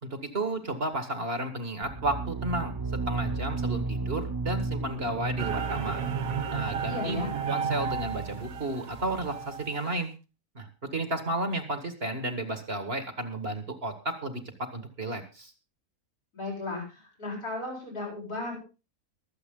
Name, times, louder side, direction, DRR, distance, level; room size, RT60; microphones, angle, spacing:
voice 1, 0.0-2.7 3.1-6.0 6.5-10.1 10.6-10.7 10.9-15.5, right 2 dB, 40° right, 8 dB, 2.1 m, -32 dB
sound 1, 1.8-9.5, right 3 dB, 25° right, 0.5 m, -35 dB
sound 2, 5.4-9.9, right 7 dB, 65° right, 1.5 m, -34 dB
voice 2, 6.8-7.3 16.3-18.6, left 2 dB, 90° left, -3 dB, 8.5 m, -35 dB
23.5 x 8.0 x 3.8 m, 0.31 s
omnidirectional pair, 1.6 m